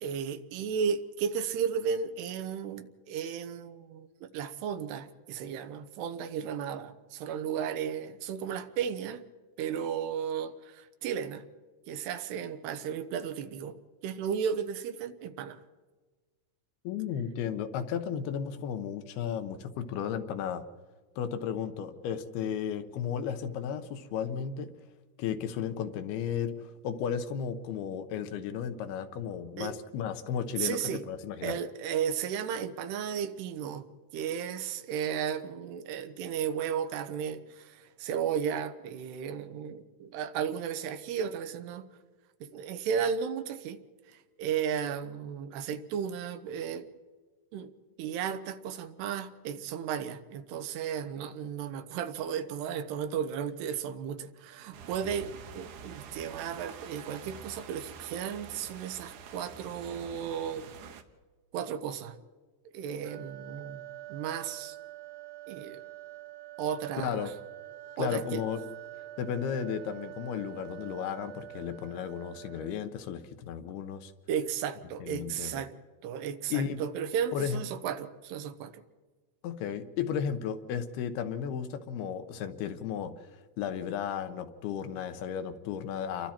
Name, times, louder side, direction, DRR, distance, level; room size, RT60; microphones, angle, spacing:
voice 1, 0.0-9.2 9.6-11.4 11.9-13.8 14.0-15.6 29.6-29.8 30.6-31.0 31.4-33.9 34.1-41.9 42.4-43.8 44.1-46.9 47.5-47.7 48.0-60.7 61.5-62.2 62.7-64.8 65.5-65.8 66.6-67.3 68.0-68.4 74.3-75.7 76.0-78.8, right 8 dB, 85° right, 10 dB, 3.1 m, -34 dB
voice 2, 16.8-20.7 21.2-24.7 25.2-31.6 67.0-67.3 68.0-68.6 69.2-74.1 75.0-75.6 76.5-76.8 77.3-77.6 79.4-83.3 83.6-86.3, left 8 dB, 75° left, 9 dB, 2.9 m, -34 dB
sound 1, 54.7-61.0, right 6 dB, 65° right, 2.2 m, -47 dB
sound 2, 63.0-73.0, right 15 dB, 50° right, 2.0 m, -46 dB
29.5 x 23.0 x 4.4 m, 1.4 s
omnidirectional pair, 4.6 m